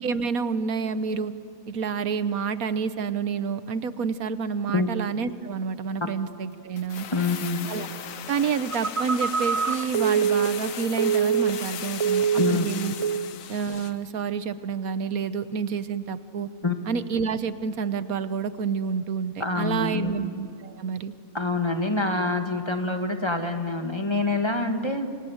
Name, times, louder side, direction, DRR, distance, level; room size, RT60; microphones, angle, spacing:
voice 1, 0.0-1.3 1.7-7.1 7.7-7.9 8.3-13.1 13.5-16.5 16.9-21.1, right 6 dB, 85° right, 12 dB, 1.5 m, -29 dB
sound 1, 6.8-14.1 14.3-14.4, left 9 dB, 70° left, 1.3 m, -38 dB
voice 2, 7.1-7.7 12.4-12.7 16.6-16.9 19.4-20.2 21.3-25.1, left 3 dB, 20° left, 5 dB, 1.7 m, -26 dB
Telephone, 8.7-11.7 12.0-12.7 13.0-13.3, right 7 dB, 35° right, 0.5 m, -24 dB
28.5 x 25.5 x 7.9 m, 2.4 s
omnidirectional pair, 1.5 m